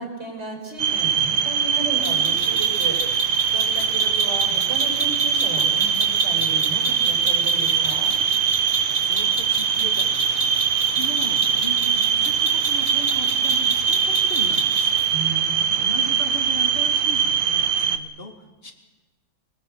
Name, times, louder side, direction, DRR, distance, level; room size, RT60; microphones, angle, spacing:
voice 1, 0.0-3.0 3.5-8.2 15.1-15.9, right 2 dB, 30° right, 1 dB, 5.4 m, -34 dB
sound 1, 0.8-18.0, right 7 dB, 75° right, 1.8 m, -22 dB
sound 2, 2.0-15.1, right 1 dB, 10° right, 6.3 m, -30 dB
voice 2, 9.0-14.9 15.8-18.7, equal, 30° left, 5 dB, 2.3 m, -38 dB
24.5 x 20.5 x 7.8 m, 1.2 s
omnidirectional pair, 2.2 m